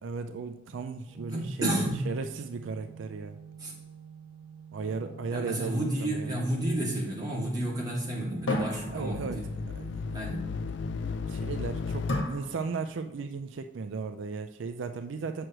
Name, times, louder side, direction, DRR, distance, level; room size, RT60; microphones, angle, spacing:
voice 1, 0.0-3.4 4.7-6.4 8.9-10.2 11.3-15.5, right 4 dB, 75° right, 8 dB, 0.4 m, -36 dB
Organ, 1.1-12.0, right 7 dB, 25° left, 2.1 m, -49 dB
voice 2, 1.3-2.1 3.6-3.7 5.3-9.5 10.1-10.4, right 1 dB, 20° right, -4 dB, 2.0 m, -31 dB
sound 1, 4.8-6.4 8.5-9.8 12.1-13.2, left 1 dB, 90° left, 1.4 m, -35 dB
sound 2, 8.8-12.2, left 5 dB, 65° left, 0.3 m, -35 dB
7.7 x 6.3 x 3.0 m, 0.94 s
head